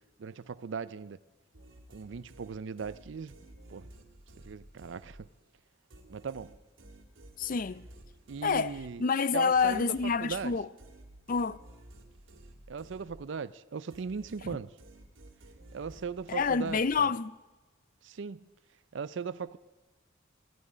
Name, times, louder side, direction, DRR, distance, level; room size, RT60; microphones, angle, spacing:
voice 1, 0.2-1.2 1.9-3.3 3.7-3.9 4.4-5.3 6.1-6.5 8.3-9.0 9.3-9.9 10.2-10.5 12.7-14.7 15.7-17.1 18.0-18.4 18.9-19.6, right 5 dB, 65° right, 0.4 m, -38 dB
sound 1, 1.5-5.5 5.9-13.5 13.9-17.4, right 1 dB, 85° right, 2.2 m, -54 dB
voice 2, 7.4-7.8 8.4-10.7 11.3-11.6 16.3-17.3, left 5 dB, 45° left, 0.5 m, -28 dB
19.0 x 14.5 x 5.0 m
head